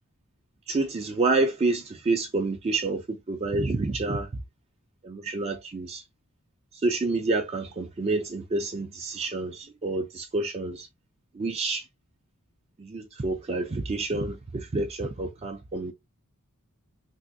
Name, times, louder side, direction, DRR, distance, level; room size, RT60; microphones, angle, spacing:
voice 1, 0.7-4.3 5.0-6.0 6.8-10.9 11.3-11.9 12.8-15.9, right 3 dB, 30° right, 0.4 m, -28 dB
3.4 x 2.5 x 2.6 m
head